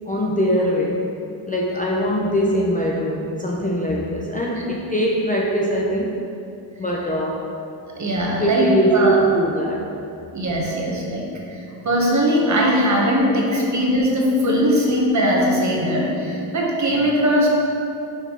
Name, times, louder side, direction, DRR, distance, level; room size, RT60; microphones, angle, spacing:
voice 1, 0.1-1.1 1.5-6.2 6.8-7.5 8.4-9.9, right 1 dB, 20° left, -3 dB, 0.4 m, -21 dB
voice 2, 8.0-9.2 10.3-17.5, equal, 40° right, -2 dB, 1.1 m, -20 dB
6.4 x 5.4 x 3.7 m, 2.7 s
wide cardioid pair, 150°, 46 cm